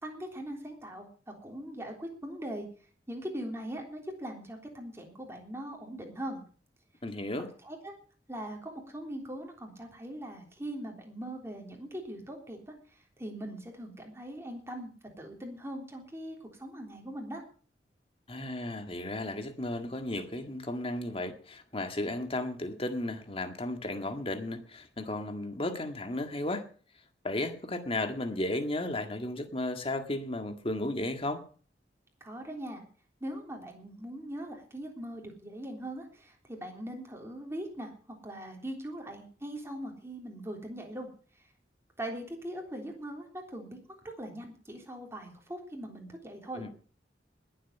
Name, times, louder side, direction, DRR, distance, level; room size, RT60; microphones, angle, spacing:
voice 1, 0.0-2.7 3.1-6.4 7.3-7.9 8.3-14.9 15.2-17.4 32.2-32.8 33.2-41.1 42.0-43.8 44.2-46.7, right 1 dB, 15° right, 3.5 m, -41 dB
voice 2, 7.0-7.5 18.3-26.6 27.2-31.4 46.5-46.7, left 1 dB, 35° left, 1.8 m, -34 dB
20.5 x 7.8 x 5.7 m
head